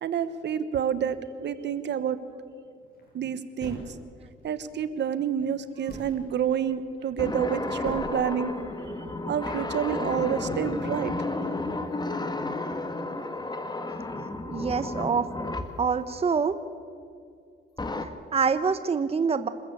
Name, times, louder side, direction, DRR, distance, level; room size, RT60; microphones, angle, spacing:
voice 1, 0.0-2.2 3.1-3.8 4.4-8.5 9.3-11.1, right 8 dB, 60° right, 12 dB, 1.3 m, -28 dB
sound 1, 2.8-3.1 3.6-4.5 5.4-5.5 5.9-6.3 7.1-7.5 7.8-8.1, left 2 dB, 50° left, 7.5 m, -41 dB
sound 2, 7.2-15.8 17.8-18.1, left 2 dB, 20° left, 1.8 m, -32 dB
voice 2, 14.5-15.2 15.8-16.6 18.0-19.5, right 5 dB, 30° right, 11 dB, 1.0 m, -26 dB
26.5 x 14.0 x 8.4 m, 2.4 s
cardioid pair, 90°, 20 cm